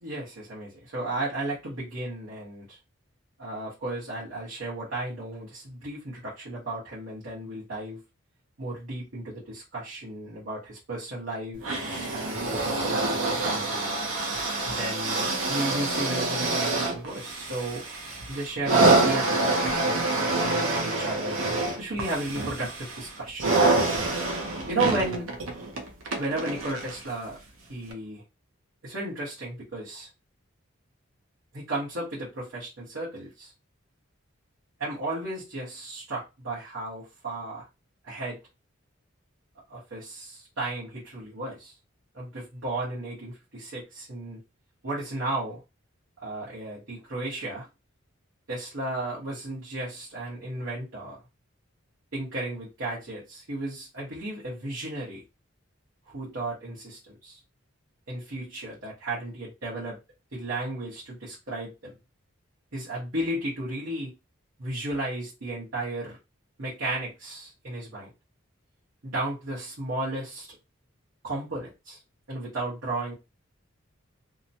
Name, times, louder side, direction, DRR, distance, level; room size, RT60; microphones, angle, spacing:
voice 1, 0.0-2.8 3.4-8.0 8.6-13.9 14.6-17.8 18.3-21.4 21.8-23.4 23.8-24.3 24.7-25.3 26.1-27.4 27.7-28.2 28.8-30.1 31.5-33.5 34.8-37.7 38.0-38.4 39.7-41.7 42.1-44.4 44.8-45.6 46.2-47.7 48.5-51.2 52.1-55.2 56.1-57.4 58.1-60.0 60.3-61.9 62.7-64.1 64.6-66.2 66.6-68.1 69.0-70.6 71.2-72.0 72.3-73.1, right 2 dB, 70° right, -8 dB, 1.1 m, -34 dB
sound 1, 11.6-27.1 27.9-28.0, right 2 dB, 85° right, 0.7 m, -26 dB
2.8 x 2.1 x 2.7 m, 0.26 s
head